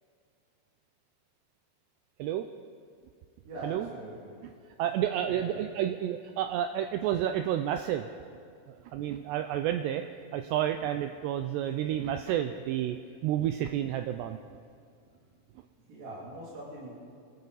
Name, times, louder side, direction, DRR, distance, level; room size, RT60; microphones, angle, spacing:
voice 1, 3.4-4.3 5.2-5.6 15.9-16.9, right 1 dB, 55° right, -7 dB, 4.2 m, -42 dB
voice 2, 4.8-8.1 8.9-10.0 10.3-14.4, right 11 dB, 85° right, 7 dB, 2.4 m, -30 dB
25.0 x 12.5 x 4.0 m, 2.2 s
omnidirectional pair, 5.4 m